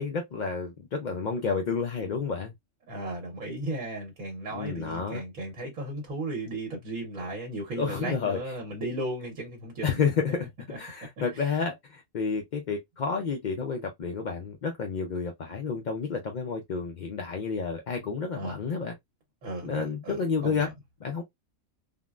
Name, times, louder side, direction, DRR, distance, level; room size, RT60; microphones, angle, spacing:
voice 1, 0.0-2.5 4.5-5.2 7.8-8.4 9.8-10.5 10.8-18.9 19.6-20.7 21.0-21.2, left 5 dB, 60° left, 0.4 m, -30 dB
voice 2, 2.9-10.0 10.7-10.8 11.3-11.6 18.3-18.6 19.4-20.7, right 2 dB, 85° right, 1.4 m, -35 dB
3.7 x 2.1 x 2.3 m
omnidirectional pair, 1.4 m